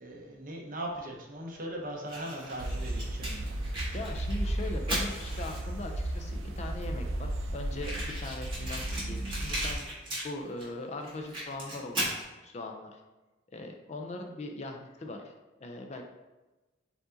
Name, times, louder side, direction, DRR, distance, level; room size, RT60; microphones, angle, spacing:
voice 1, 0.0-3.5, right 1 dB, 45° right, 0 dB, 0.7 m, -39 dB
Fire, 2.1-5.9 6.6-6.7 6.8-6.9 7.1-7.2 7.8-10.7 11.0-12.2, right 1 dB, 25° right, 1.5 m, -37 dB
sound 1, 2.6-9.7, right 1 dB, 80° right, 0.5 m, -34 dB
voice 2, 3.9-9.8 10.2-12.0 12.4-13.0 13.5-15.3 15.6-16.0, left 2 dB, 35° left, 3 dB, 0.4 m, -40 dB
4.7 x 2.6 x 3.8 m, 1.1 s
head